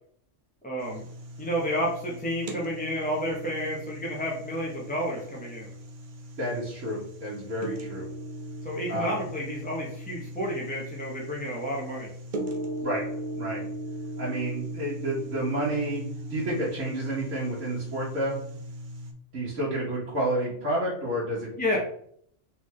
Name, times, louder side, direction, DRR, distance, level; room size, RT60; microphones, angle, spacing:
voice 1, 0.6-1.0 1.4-5.7 8.6-12.1 21.6-21.8, equal, 10° left, -4 dB, 0.7 m, -30 dB
sound 1, 0.8-19.1, right 1 dB, 50° right, 0.7 m, -38 dB
voice 2, 6.4-8.1 8.9-9.1 12.8-13.0 13.4-13.6 14.2-18.4 19.3-21.8, right 1 dB, 80° right, -8 dB, 1.6 m, -30 dB
3.9 x 3.7 x 3.1 m, 0.64 s
omnidirectional pair, 1.3 m